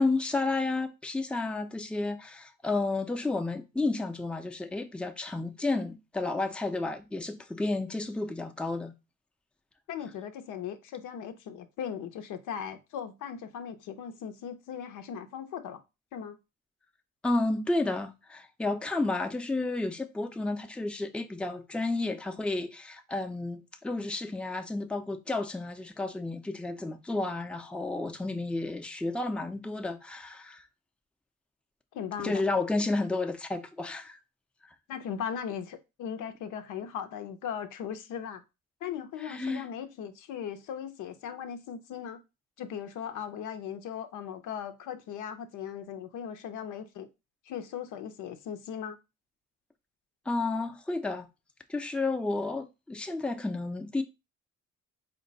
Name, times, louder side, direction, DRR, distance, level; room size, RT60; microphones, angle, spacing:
voice 1, 0.0-9.0 17.2-30.6 32.2-34.2 39.2-39.7 50.3-51.3 51.7-54.0, left 2 dB, 5° left, 0.5 m, -31 dB
voice 2, 9.9-15.8 16.1-16.3 31.9-32.4 34.9-38.4 38.8-42.2 42.6-47.1 47.5-49.0, left 8 dB, 85° left, 0.7 m, -38 dB
4.4 x 2.2 x 3.9 m
cardioid pair, 90°, 30 cm